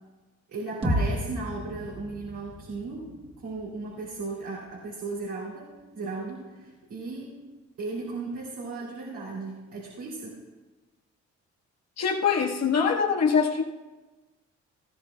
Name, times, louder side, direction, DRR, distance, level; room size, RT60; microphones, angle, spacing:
voice 1, 0.5-7.4 7.8-10.4, right 3 dB, 75° right, -5 dB, 3.2 m, -36 dB
sound 1, 0.8-4.8, equal, 20° right, 1.9 m, -33 dB
voice 2, 12.0-13.6, left 6 dB, 60° left, 0 dB, 1.5 m, -23 dB
19.0 x 13.0 x 2.3 m, 1.2 s
cardioid pair, 90°, 30 cm